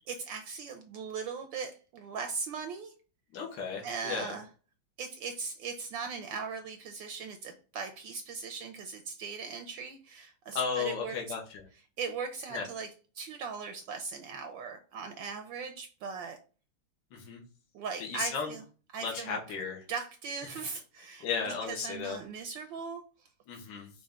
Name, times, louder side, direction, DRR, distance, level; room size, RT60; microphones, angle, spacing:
voice 1, 0.1-2.9 3.8-4.5 5.0-11.3 12.0-12.9 13.1-16.4 17.7-18.6 18.9-19.6 19.9-23.3, right 5 dB, 75° right, 6 dB, 1.2 m, -39 dB
voice 2, 3.3-4.4 10.6-11.6 12.5-12.7 17.1-17.4 18.0-18.6 19.0-19.8 21.2-22.2 23.5-23.9, left 6 dB, 65° left, -1 dB, 1.7 m, -35 dB
5.6 x 2.7 x 3.5 m, 0.36 s
omnidirectional pair, 2.3 m